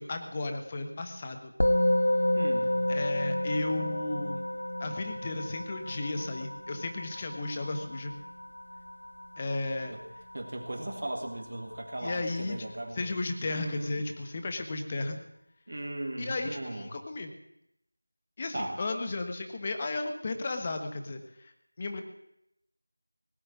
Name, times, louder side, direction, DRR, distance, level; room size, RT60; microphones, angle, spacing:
voice 1, 0.0-1.5 2.9-4.4 4.8-8.1 9.4-10.0 12.0-12.6 12.9-15.2 16.2-17.3 18.4-22.0, left 2 dB, 20° left, 6 dB, 1.2 m, -34 dB
Musical instrument, 1.6-11.1, left 1 dB, 85° left, 1.1 m, -30 dB
voice 2, 2.4-2.8 9.9-10.0 10.3-13.1 13.5-14.0 15.7-16.9 18.5-18.8, right 1 dB, 45° right, 3 dB, 2.9 m, -37 dB
18.5 x 7.6 x 9.5 m, 0.80 s
figure-of-eight pair, 175°, 0 cm